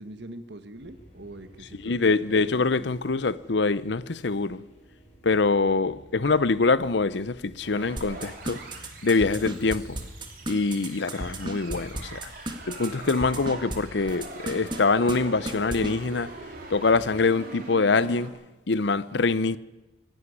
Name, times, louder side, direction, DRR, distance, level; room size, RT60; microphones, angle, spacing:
voice 1, 0.0-2.0 2.3-2.9 12.9-13.1, right 1 dB, 65° right, 1.4 m, -43 dB
sound 1, 0.8-17.2, equal, 35° left, 6.4 m, -53 dB
voice 2, 1.8-4.6 5.2-8.6 9.0-10.0 10.5-12.2 12.7-16.3 16.7-18.3 18.7-19.6, left 3 dB, 70° left, 0.7 m, -24 dB
sound 2, 7.6-18.3, right 2 dB, 50° right, 3.9 m, -43 dB
sound 3, 8.0-13.8 14.1-14.8 15.1-15.2 15.5-15.9, right 1 dB, 25° right, 1.9 m, -33 dB
23.5 x 11.5 x 9.9 m
head